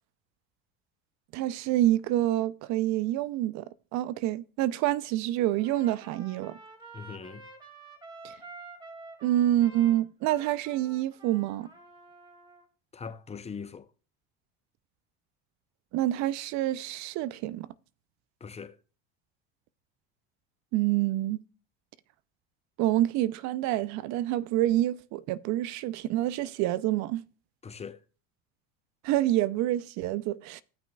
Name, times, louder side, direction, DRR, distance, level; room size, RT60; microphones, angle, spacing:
voice 1, 1.3-3.6 3.9-6.6 9.2-11.7 15.9-17.7 20.7-21.4 22.8-27.2 29.0-30.6, right 14 dB, 60° right, 0.5 m, -27 dB
Trumpet, 5.6-12.7, right 3 dB, 15° right, 2.2 m, -49 dB
voice 2, 6.9-7.4 12.9-13.8 18.4-18.8 27.6-28.0, left 6 dB, 20° left, 0.6 m, -41 dB
16.0 x 6.0 x 2.3 m
supercardioid pair, 90°, 32 cm